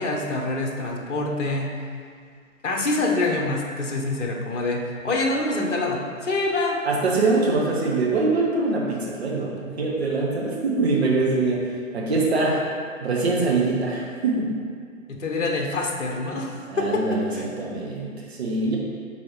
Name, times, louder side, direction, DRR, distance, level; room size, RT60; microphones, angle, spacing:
voice 1, 0.0-1.7 2.6-6.8 15.1-17.5, left 2 dB, 60° left, 1 dB, 0.9 m, -26 dB
voice 2, 6.8-12.6 13.0-14.5 16.7-18.8, right 3 dB, 50° right, -3 dB, 1.2 m, -23 dB
7.5 x 4.1 x 3.1 m, 2.1 s
figure-of-eight pair, 135°, 42 cm